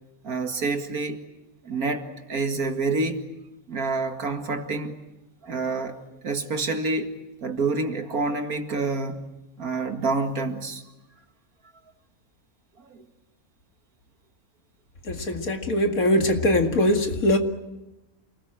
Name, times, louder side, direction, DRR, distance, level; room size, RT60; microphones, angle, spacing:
voice 1, 0.2-1.2 1.6-3.2 3.7-5.0 5.4-7.1 7.4-9.3 9.6-10.8 12.8-13.0, right 3 dB, 80° right, 2.5 m, -28 dB
voice 2, 15.0-17.4, left 1 dB, 75° left, 2.6 m, -22 dB
28.0 x 20.0 x 9.0 m
omnidirectional pair, 1.5 m